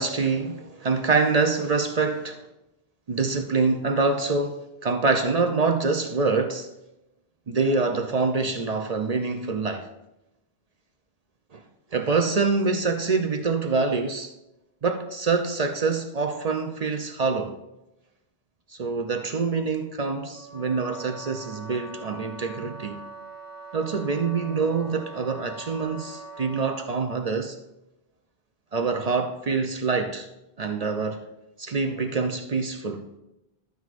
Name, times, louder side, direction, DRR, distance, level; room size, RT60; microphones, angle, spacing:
voice 1, 0.0-2.4 3.1-6.7 7.5-9.9 11.5-11.6 11.9-14.3 14.8-17.6 18.8-23.0 23.7-27.6 28.7-30.3 30.6-31.2 31.6-33.1, right 4 dB, 45° right, 0.6 m, -25 dB
Wind instrument woodwind instrument, 20.3-26.9, right 2 dB, 15° right, 3.0 m, -42 dB
12.5 x 9.4 x 2.5 m
omnidirectional pair, 1.1 m